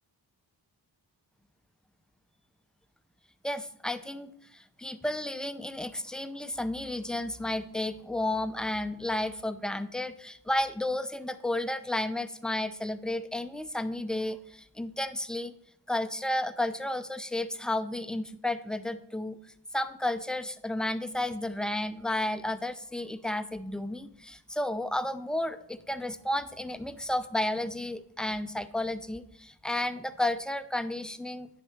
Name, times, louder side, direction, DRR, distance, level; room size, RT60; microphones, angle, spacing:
voice 1, 3.4-15.5 15.9-19.4 19.7-31.5, left 1 dB, ahead, 11 dB, 0.6 m, -32 dB
9.9 x 4.4 x 6.5 m, 0.73 s
cardioid pair, 60°, 43 cm